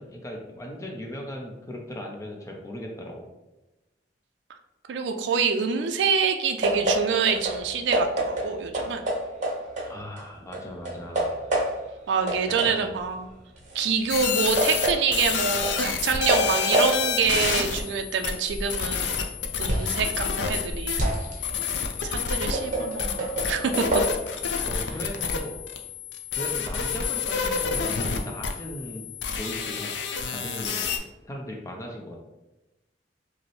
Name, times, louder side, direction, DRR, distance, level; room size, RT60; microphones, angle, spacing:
voice 1, 0.0-3.3 9.8-11.3 12.5-12.9 24.6-25.6 26.3-29.0 29.4-29.9 30.2-30.9 31.2-32.2, equal, 20° left, 0 dB, 0.5 m, -38 dB
voice 2, 4.9-9.0 12.1-13.3 13.7-19.2 19.6-21.0 22.0-23.9, right 6 dB, 75° right, 5 dB, 0.3 m, -26 dB
sound 1, 6.6-10.2 10.5-12.0 12.3-20.0 20.4-24.0, right 1 dB, 45° right, 0.9 m, -28 dB
sound 2, 14.1-31.0, left 6 dB, 80° left, 0.5 m, -29 dB
5.1 x 2.0 x 3.0 m, 1.0 s
head